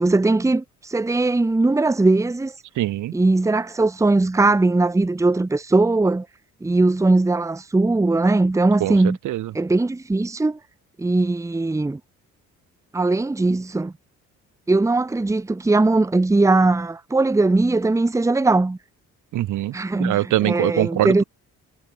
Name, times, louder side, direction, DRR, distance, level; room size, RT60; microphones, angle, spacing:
voice 1, 0.0-2.5 3.1-6.3 6.6-9.2 9.5-10.6 11.0-12.0 12.9-13.9 14.7-18.8 19.7-20.2 20.4-21.2, right 2 dB, 10° right, 0.8 m, -19 dB
voice 2, 2.8-3.1 8.8-9.5 19.3-21.2, right 14 dB, 80° right, 2.0 m, -23 dB
cardioid pair, 90°, 30 cm